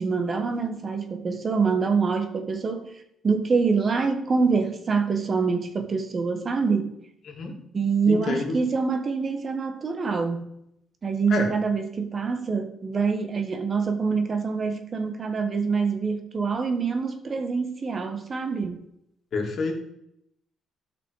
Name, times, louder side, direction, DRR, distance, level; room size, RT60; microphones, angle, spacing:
voice 1, 0.0-2.9 3.2-6.9 7.7-10.5 11.0-18.8, right 5 dB, 40° right, 1.6 m, -25 dB
voice 2, 8.1-8.6 11.3-11.5 19.3-19.7, left 3 dB, 55° left, 2.8 m, -27 dB
13.0 x 6.0 x 5.0 m
cardioid pair, 90°, 0 cm